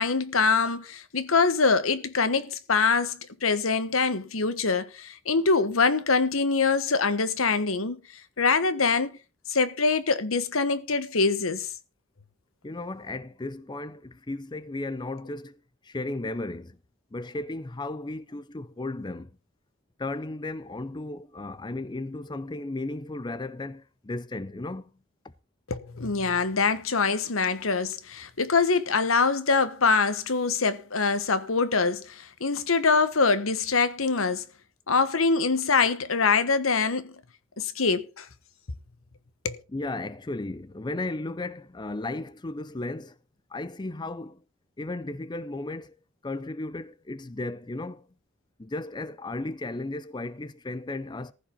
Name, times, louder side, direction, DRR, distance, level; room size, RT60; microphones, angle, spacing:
voice 1, 0.0-8.0 8.4-9.2 9.5-11.7 25.7-34.4 34.9-37.1 37.6-38.3 39.4-39.6, left 4 dB, 85° left, 1.2 m, -24 dB
voice 2, 12.6-16.8 17.1-19.3 20.0-24.9 39.7-43.2 43.5-44.4 44.8-45.9 46.2-48.1 48.6-51.3, left 2 dB, 20° left, 0.6 m, -35 dB
15.0 x 5.3 x 6.9 m
head